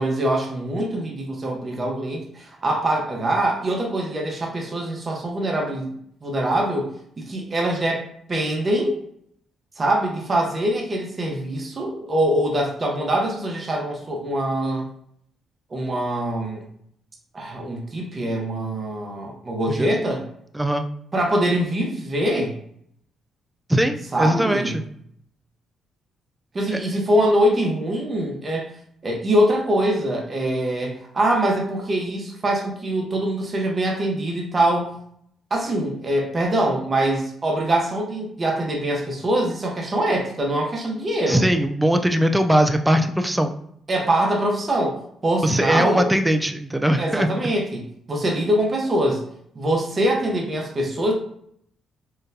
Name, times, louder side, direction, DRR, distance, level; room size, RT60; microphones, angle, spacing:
voice 1, 0.0-5.9 6.2-6.9 7.2-9.0 9.8-14.9 15.7-16.6 17.3-20.3 21.1-22.5 24.1-24.8 26.5-28.7 29.0-34.9 35.5-41.5 43.9-46.1 47.0-49.2 49.5-51.1, right 1 dB, 35° right, -1 dB, 0.8 m, -23 dB
voice 2, 20.5-20.9 23.7-24.8 26.7-26.8 41.3-43.5 45.4-47.3, right 1 dB, 10° right, 7 dB, 0.3 m, -20 dB
3.8 x 2.2 x 2.7 m, 0.68 s
cardioid pair, 90°, 0 cm